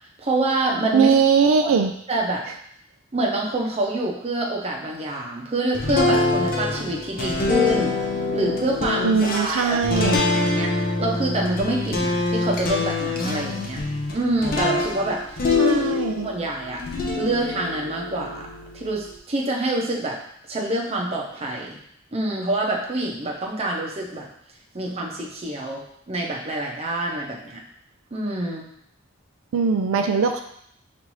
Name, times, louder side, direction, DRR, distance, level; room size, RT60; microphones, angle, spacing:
voice 1, 0.2-1.1 1.6-2.4 3.1-8.0 8.3-13.8 14.1-15.2 15.6-15.8 16.2-16.8 17.2-18.5 18.7-20.2 20.5-21.8 22.1-24.3 24.7-27.6 28.1-28.7, right 1 dB, 30° right, -2 dB, 0.7 m, -26 dB
voice 2, 0.9-1.9 9.0-10.2 15.6-16.3 29.5-30.4, right 5 dB, 90° right, 5 dB, 0.4 m, -20 dB
sound 1, 5.7-16.3 16.8-19.1, left 3 dB, 45° left, 0.7 m, -25 dB
5.3 x 2.6 x 3.0 m, 0.68 s
head